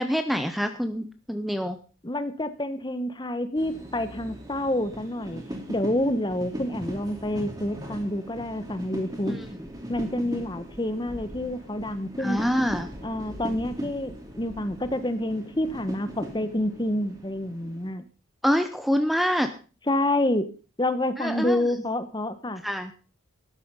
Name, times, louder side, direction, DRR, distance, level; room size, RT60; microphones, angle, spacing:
voice 1, 0.0-1.8 9.3-9.5 12.2-12.9 18.4-19.5 21.2-21.6 22.6-22.9, equal, ahead, 8 dB, 0.8 m, -26 dB
voice 2, 2.0-5.4 5.7-9.3 9.9-12.4 13.0-18.0 19.9-20.5 20.8-22.6, left 1 dB, 20° left, 12 dB, 1.1 m, -28 dB
sound 1, 3.6-17.9, equal, 20° right, 3.1 m, -39 dB
13.0 x 11.5 x 5.5 m, 0.37 s
head